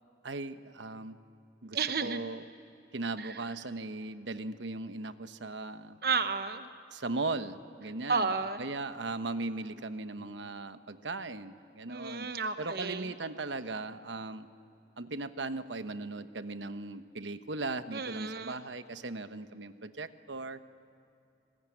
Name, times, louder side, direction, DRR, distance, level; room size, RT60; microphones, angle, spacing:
voice 1, 0.2-1.2 1.6-2.4 2.9-6.0 6.9-8.3 8.6-12.3 12.6-14.5 15.0-20.6, right 3 dB, 90° right, 10 dB, 1.1 m, -38 dB
voice 2, 1.7-2.2 3.2-3.4 6.0-6.7 8.1-8.6 11.9-13.1 17.9-18.6, right 5 dB, 55° right, 9 dB, 1.0 m, -32 dB
26.5 x 21.5 x 10.0 m, 2.7 s
head